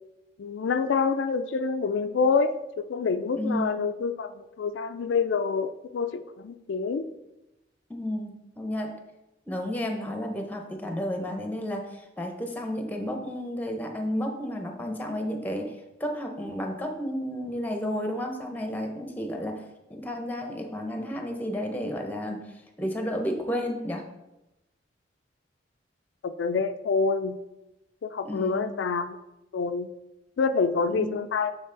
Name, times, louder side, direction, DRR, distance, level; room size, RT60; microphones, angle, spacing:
voice 1, 0.4-7.0 26.2-27.4 28.0-29.2 29.5-29.9 30.4-31.5, left 5 dB, 85° left, 8 dB, 0.4 m, -27 dB
voice 2, 3.4-3.8 7.9-8.9 9.5-15.7 16.0-19.6 19.9-22.5 22.8-24.0 28.2-28.7 30.9-31.1, equal, 10° left, 4 dB, 0.7 m, -32 dB
7.8 x 4.0 x 3.8 m, 0.95 s
head